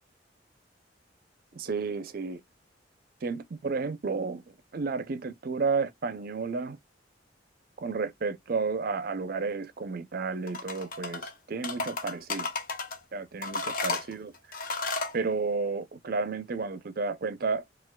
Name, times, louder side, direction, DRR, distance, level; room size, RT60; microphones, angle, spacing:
voice 1, 1.5-2.4 3.2-6.8 7.8-12.5 13.1-14.6 15.1-17.6, right 4 dB, 55° right, 0.5 m, -32 dB
sound 1, 10.5-11.3 11.6-13.0 13.4-15.2, left 3 dB, 50° left, 0.8 m, -33 dB
4.4 x 2.3 x 2.2 m
head